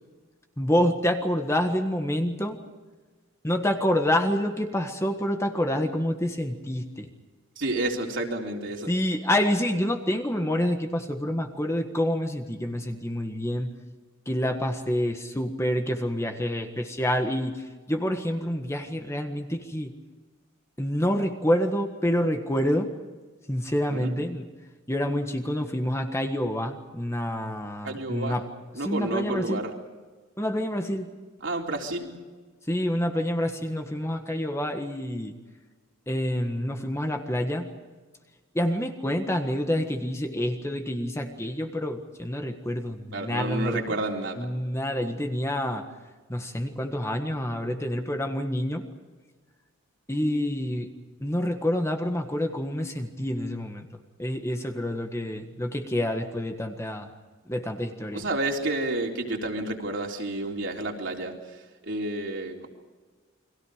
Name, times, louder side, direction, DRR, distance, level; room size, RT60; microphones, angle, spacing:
voice 1, 0.6-2.6 3.4-7.1 8.9-13.7 14.3-17.5 17.9-19.9 20.8-22.9 23.5-24.4 24.9-28.4 28.8-29.6 30.4-31.1 32.7-35.3 36.1-37.7 38.5-43.9 44.4-45.8 46.3-48.8 50.1-50.9 51.2-53.8 54.2-57.1 57.5-58.2, equal, 15° left, 5 dB, 1.5 m, -27 dB
voice 2, 7.6-8.9 23.9-24.2 27.8-28.4 28.7-29.7 31.4-32.2 43.1-44.4 58.1-62.7, right 2 dB, 60° right, 0 dB, 3.8 m, -30 dB
30.0 x 23.0 x 5.1 m, 1.4 s
head